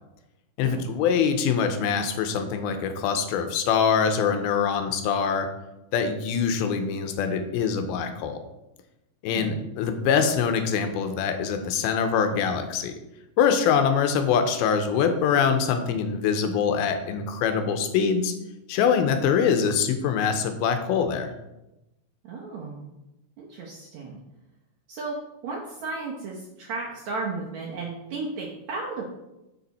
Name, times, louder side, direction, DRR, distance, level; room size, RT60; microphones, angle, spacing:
voice 1, 0.6-5.5 5.9-8.4 9.2-12.9 13.4-18.3 18.7-21.3, left 6 dB, 85° left, 7 dB, 2.5 m, -24 dB
voice 2, 22.2-22.9 23.4-24.2 24.9-25.2 25.4-29.0, right 3 dB, 70° right, -2 dB, 1.8 m, -34 dB
6.8 x 6.7 x 4.1 m, 0.93 s
omnidirectional pair, 4.4 m